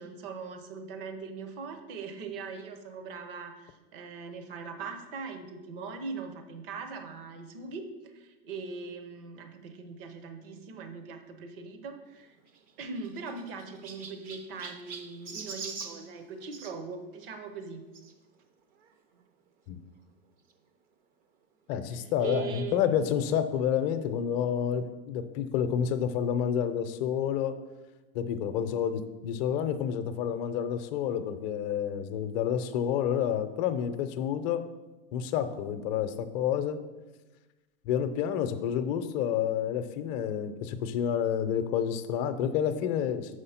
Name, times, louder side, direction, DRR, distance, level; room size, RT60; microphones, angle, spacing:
voice 1, 0.0-12.4 12.8-17.8 22.2-22.8, right 4 dB, 65° right, 7 dB, 1.0 m, -40 dB
Chirp tweet, 12.4-16.8 17.9-18.1 18.8-18.9 19.1-19.2 20.5-20.6, right 5 dB, 30° right, 0.5 m, -44 dB
voice 2, 21.7-27.5 28.1-34.6 35.1-36.8 37.8-43.4, left 8 dB, 45° left, 9 dB, 0.7 m, -29 dB
6.4 x 5.0 x 5.7 m, 1.2 s
supercardioid pair, 145°, 31 cm